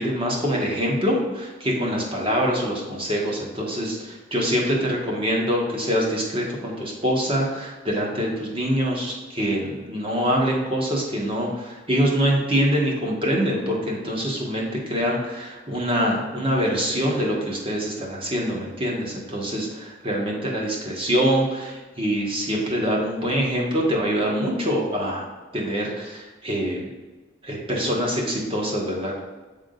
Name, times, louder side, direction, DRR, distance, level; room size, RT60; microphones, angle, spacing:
voice 1, 0.0-25.2 25.5-26.8 27.4-29.2, equal, 30° right, -2 dB, 1.2 m, -24 dB
7.9 x 3.6 x 3.8 m, 1.2 s
head